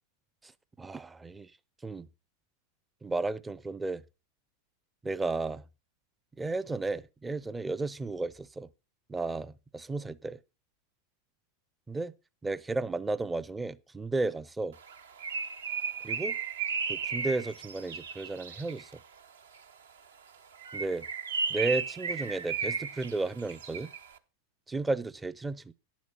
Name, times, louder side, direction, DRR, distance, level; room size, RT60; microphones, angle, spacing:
voice 1, 0.8-1.5 1.8-2.1 3.0-4.0 5.0-5.6 6.4-8.7 9.1-10.4 11.9-12.1 12.4-14.8 16.0-16.4 16.9-18.9 20.7-21.1 21.5-23.9 24.7-25.7, right 3 dB, 10° right, 0.5 m, -33 dB
Bird, 14.8-18.9 20.5-24.1, right 5 dB, 65° right, 0.7 m, -34 dB
10.0 x 7.2 x 5.5 m
figure-of-eight pair, 90°, 0 cm